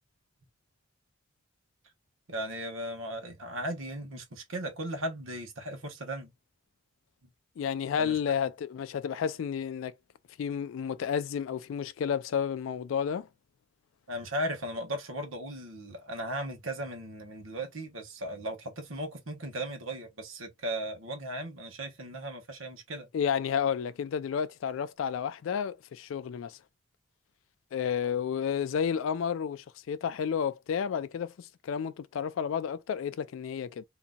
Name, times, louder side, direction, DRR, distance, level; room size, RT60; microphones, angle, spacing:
voice 1, 2.3-6.3 8.0-8.2 14.1-23.1, right 1 dB, 80° right, 1.2 m, -37 dB
voice 2, 7.6-9.9 10.4-13.3 23.1-26.6 27.7-33.8, left 7 dB, 75° left, 0.3 m, -31 dB
3.9 x 2.7 x 2.2 m
head